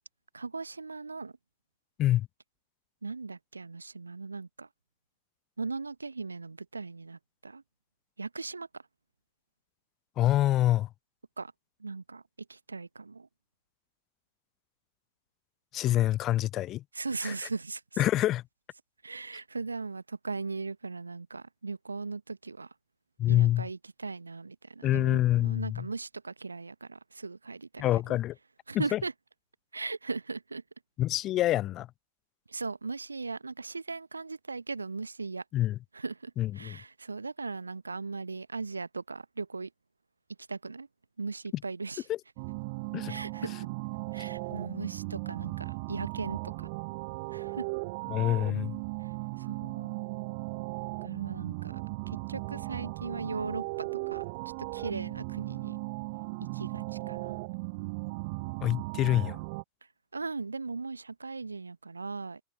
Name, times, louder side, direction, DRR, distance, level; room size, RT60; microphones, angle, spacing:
voice 1, 0.3-1.3 3.0-4.7 5.6-7.6 8.2-8.8 11.4-11.5 11.8-12.2 12.5-13.3 16.9-17.8 19.0-22.7 23.3-28.2 28.7-29.1 29.7-30.6 32.5-35.4 35.9-39.7 40.5-40.9 41.2-42.0 43.1-43.7 44.1-46.7 47.3-47.7 49.4-49.9 51.0-51.8 52.3-54.2 54.7-55.8 56.5-57.4 60.1-62.4, right 4 dB, 80° right, 0.9 m, -38 dB
voice 2, 10.2-10.9 15.7-16.8 17.2-17.3 18.0-18.4 23.2-23.7 24.8-25.9 27.8-28.4 28.7-29.0 31.0-31.9 35.5-35.8 36.4-36.8 42.1-42.2 42.9-43.2 48.1-48.8 58.6-59.4, left 14 dB, 35° left, 0.7 m, -26 dB
sound 1, 42.4-59.6, right 27 dB, 45° right, 0.7 m, -37 dB
figure-of-eight pair, 90°, 0 cm